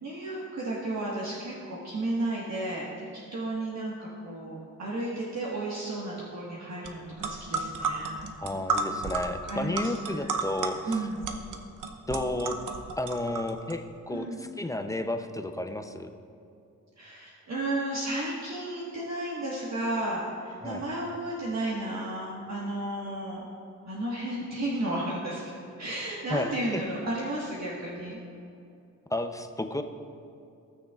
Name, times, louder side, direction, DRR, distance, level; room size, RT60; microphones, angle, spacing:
voice 1, 0.0-8.2 9.4-10.5 10.9-11.2 14.1-14.4 17.0-23.4 23.8-25.4 25.8-28.2, right 1 dB, 55° right, -6 dB, 1.6 m, -33 dB
sound 1, 6.9-7.0 7.2-13.7, right 4 dB, 70° right, 0.9 m, -32 dB
voice 2, 8.4-11.0 12.1-12.6 13.0-16.1 20.6-20.8 26.3-26.8 29.1-29.8, left 1 dB, 10° left, 6 dB, 0.6 m, -32 dB
18.0 x 6.4 x 2.4 m, 2.6 s
cardioid pair, 70°, 32 cm